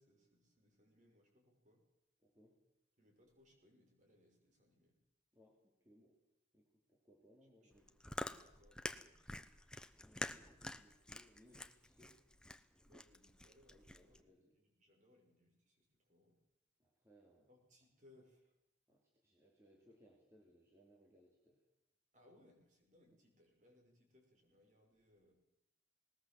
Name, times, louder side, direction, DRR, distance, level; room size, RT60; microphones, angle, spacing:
voice 1, 0.0-1.8 3.0-4.9 7.6-9.6 12.8-16.4 17.5-18.5 22.1-25.3, left 1 dB, 40° right, 1 dB, 6.1 m, -70 dB
voice 2, 2.2-2.6 5.3-6.2 6.5-7.9 10.0-12.2 13.7-14.6 16.8-17.5 18.9-21.6 23.1-23.2, equal, 15° right, -2 dB, 3.0 m, -68 dB
Chewing mastication, 7.7-14.2, left 1 dB, 5° left, 0.7 m, -48 dB
20.0 x 19.5 x 7.8 m, 0.87 s
head